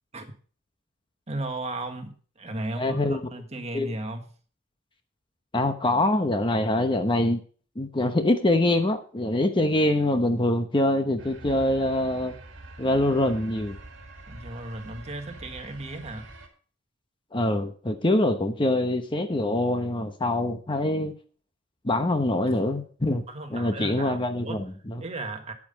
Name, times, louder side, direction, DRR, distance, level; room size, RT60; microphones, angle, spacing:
voice 1, 1.3-4.3 14.3-16.3 23.3-24.7 25.0-25.5, right 2 dB, 30° right, 4 dB, 1.7 m, -35 dB
voice 2, 2.8-3.2 3.7-3.9 5.5-7.4 7.8-12.3 12.8-13.8 17.3-21.1 21.8-23.2 23.5-25.0, left 1 dB, 25° left, 7 dB, 0.9 m, -24 dB
sound 1, 11.2-16.5, right 2 dB, 60° right, 2.5 m, -45 dB
9.7 x 9.5 x 5.4 m, 0.41 s
head